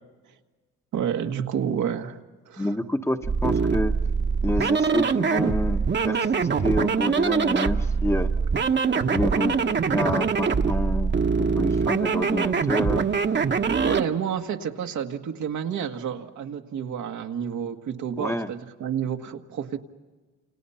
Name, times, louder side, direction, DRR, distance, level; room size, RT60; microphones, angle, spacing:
voice 1, 0.9-2.2 2.5-2.7 13.8-19.8, right 8 dB, 75° right, 4 dB, 1.8 m, -29 dB
voice 2, 2.6-3.9 4.4-8.3 8.9-13.1 18.2-18.5, left 1 dB, 10° left, 6 dB, 1.2 m, -28 dB
sound 1, 3.2-14.1, right 5 dB, 35° right, 1.3 m, -23 dB
29.5 x 28.5 x 5.8 m, 1.3 s
cardioid pair, 90°, 30 cm